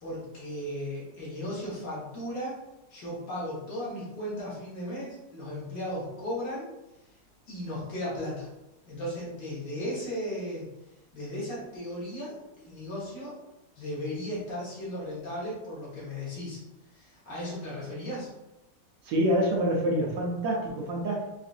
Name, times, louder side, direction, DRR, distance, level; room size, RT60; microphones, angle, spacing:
voice 1, 0.0-2.6 2.9-6.7 7.5-8.5 8.9-10.7 11.1-13.4 13.8-16.6 16.9-18.3, left 1 dB, 70° left, -7 dB, 2.1 m, -36 dB
voice 2, 19.0-21.2, equal, 70° right, -2 dB, 1.2 m, -26 dB
4.8 x 2.5 x 2.5 m, 0.96 s
omnidirectional pair, 1.9 m